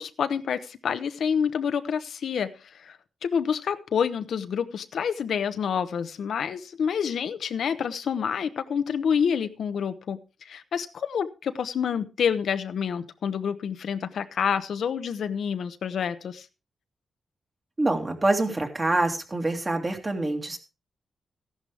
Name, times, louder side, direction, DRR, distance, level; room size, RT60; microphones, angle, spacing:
voice 1, 0.0-3.0 3.2-16.5, left 7 dB, 70° left, 0.9 m, -28 dB
voice 2, 17.8-20.6, right 2 dB, 25° right, 2.3 m, -25 dB
14.5 x 11.0 x 3.4 m
wide cardioid pair, 135°, 0 cm